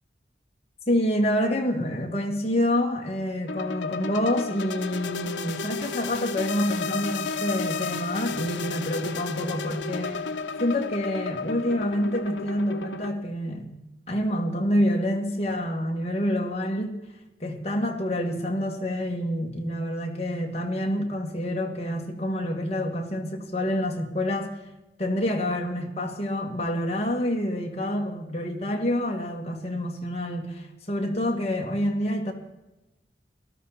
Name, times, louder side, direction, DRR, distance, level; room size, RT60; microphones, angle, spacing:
voice 1, 0.9-10.3 10.6-13.8 14.1-17.0 17.4-24.6 25.0-32.3, equal, 35° left, 1 dB, 2.0 m, -27 dB
sound 1, 3.5-13.1, left 4 dB, 90° left, 0.8 m, -33 dB
18.5 x 12.5 x 4.2 m, 1.0 s
head